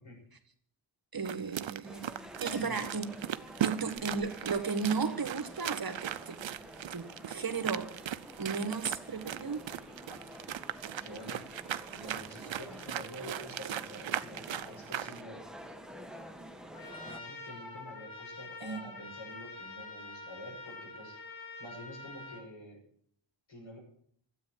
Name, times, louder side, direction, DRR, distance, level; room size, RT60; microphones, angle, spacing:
voice 1, 1.1-3.1 3.6-6.4 6.9-7.9 8.4-9.7 18.6-18.8, right 5 dB, 50° right, 1.7 m, -35 dB
sound 1, 1.3-15.2, right 11 dB, 70° right, 0.7 m, -38 dB
sound 2, 1.8-17.2, equal, ahead, 1.5 m, -49 dB
voice 2, 2.5-2.9 3.6-3.8 10.1-10.2 10.9-11.4 11.9-15.4 17.0-22.8 23.5-23.8, equal, 75° left, 6.7 m, -48 dB
Trumpet, 16.7-22.4, left 3 dB, 45° left, 4.1 m, -46 dB
13.0 x 8.6 x 9.5 m
wide cardioid pair, 75°, 46 cm